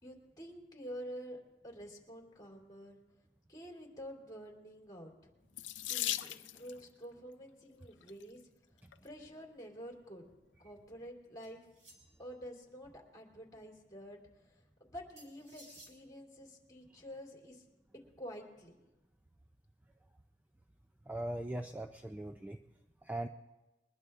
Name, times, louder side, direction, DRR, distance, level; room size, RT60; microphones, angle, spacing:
voice 1, 0.0-1.4 1.6-3.0 3.5-5.3 5.9-8.4 9.0-10.2 10.6-11.6 12.2-17.6 18.2-18.7, equal, 20° left, -1 dB, 3.1 m, -49 dB
Water tap faucet / Sink (filling or washing), 5.5-6.8 7.8-8.2 8.9-9.0 9.4-9.5, left 13 dB, 85° left, 0.5 m, -38 dB
sound 1, 11.4-12.3 15.2-16.0, right 1 dB, 40° right, 3.5 m, -58 dB
voice 2, 21.1-22.6 23.0-23.3, right 1 dB, 10° right, 4 dB, 0.4 m, -40 dB
22.0 x 21.0 x 2.5 m, 1.1 s
head